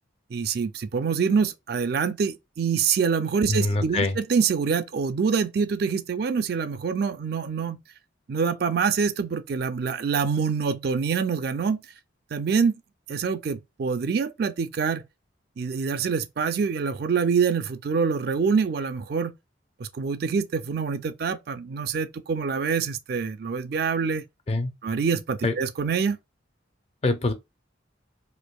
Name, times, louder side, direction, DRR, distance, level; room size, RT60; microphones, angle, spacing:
voice 1, 0.3-7.8 8.3-11.8 12.3-12.7 13.1-15.0 15.6-19.3 19.8-24.2 24.8-26.2, right 5 dB, 50° right, 0.4 m, -25 dB
voice 2, 3.5-4.2 24.5-24.7 25.4-25.5 27.0-27.3, left 2 dB, 30° left, 0.4 m, -24 dB
4.4 x 2.6 x 2.3 m
head